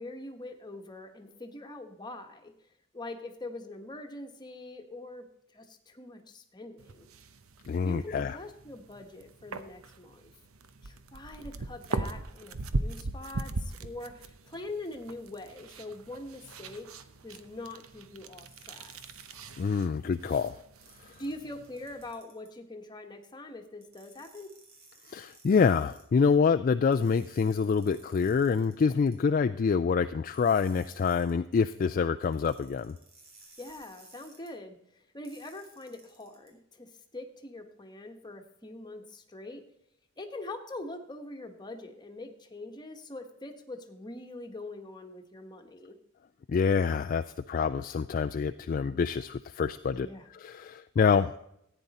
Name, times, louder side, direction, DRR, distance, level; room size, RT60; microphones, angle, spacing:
voice 1, 0.0-2.5 2.9-5.3 5.5-7.1 7.8-10.3 10.8-16.9 17.2-18.9 21.2-24.5 33.6-39.6 40.2-46.0 49.9-50.3, left 2 dB, 20° left, 4 dB, 1.2 m, -43 dB
sound 1, 6.8-22.1, right 2 dB, 90° right, 0.8 m, -40 dB
voice 2, 7.7-8.4 19.6-20.6 25.1-33.0 46.5-50.1 50.3-51.4, left 5 dB, 40° left, 8 dB, 0.3 m, -26 dB
sound 2, 18.4-19.7 20.8-22.5 23.8-26.0 26.9-29.2 30.3-31.3 32.2-34.5 35.2-36.5, right 3 dB, 70° right, 3.7 m, -57 dB
14.5 x 9.2 x 4.2 m, 0.76 s
head